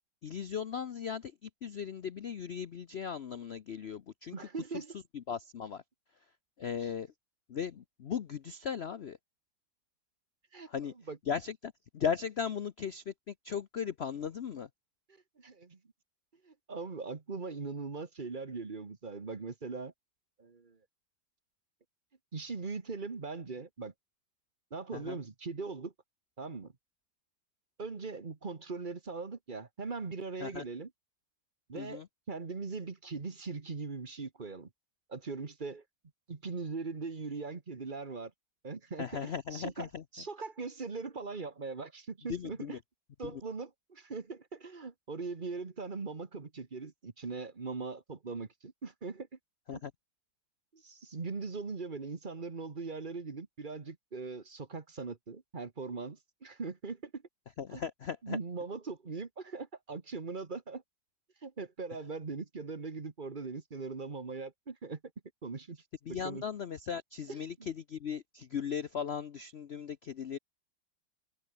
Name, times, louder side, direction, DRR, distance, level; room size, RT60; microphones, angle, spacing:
voice 1, 0.2-4.4 4.7-4.8 5.1-5.8 6.6-7.1 7.5-9.2 10.7-10.9 11.3-14.7 24.9-25.2 30.4-30.6 31.7-32.1 39.0-40.0 42.3-42.8 43.2-43.4 49.7-49.9 57.6-58.4 66.1-70.4, left 7 dB, 80° left, 0.5 m, -37 dB
voice 2, 4.3-4.9 6.8-6.9 10.5-10.7 11.1-11.2 15.4-15.8 16.4-19.9 20.4-20.8 22.3-23.9 24.7-25.9 26.4-26.7 27.8-30.9 31.7-32.0 32.3-34.7 35.1-35.8 36.3-38.3 38.6-42.8 43.2-49.3 49.7-49.8 50.7-57.2 57.7-57.8 58.2-60.8 61.4-65.0 65.4-65.8 66.1-66.4 67.3-67.7, right 4 dB, 30° right, 1.4 m, -40 dB
omnidirectional pair, 2.1 m